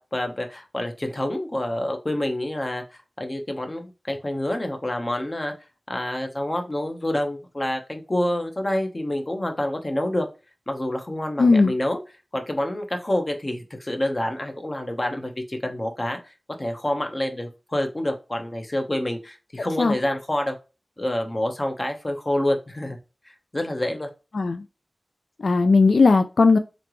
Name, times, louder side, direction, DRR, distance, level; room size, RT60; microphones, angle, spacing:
voice 1, 0.1-5.5 5.9-10.3 10.7-12.0 12.3-16.3 16.6-20.6 21.0-23.0 23.5-24.1, left 1 dB, 35° left, 5 dB, 0.9 m, -27 dB
voice 2, 11.4-11.7 19.8-20.0 24.3-24.6 25.4-26.6, left 3 dB, 80° left, 8 dB, 0.3 m, -17 dB
3.8 x 3.3 x 3.0 m, 0.30 s
wide cardioid pair, 75°, 0 cm